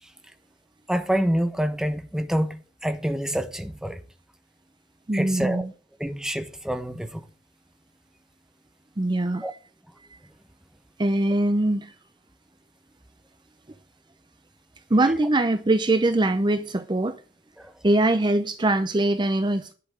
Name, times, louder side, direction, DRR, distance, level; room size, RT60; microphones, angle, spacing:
voice 1, 0.9-4.0 5.1-5.7 6.0-7.2 9.4-9.5 17.6-17.7, equal, 5° right, 1.0 m, -27 dB
voice 2, 5.1-5.7 9.0-9.5 11.0-11.9 14.9-17.2 17.8-19.7, right 2 dB, 25° right, 0.6 m, -22 dB
11.0 x 5.9 x 7.2 m
head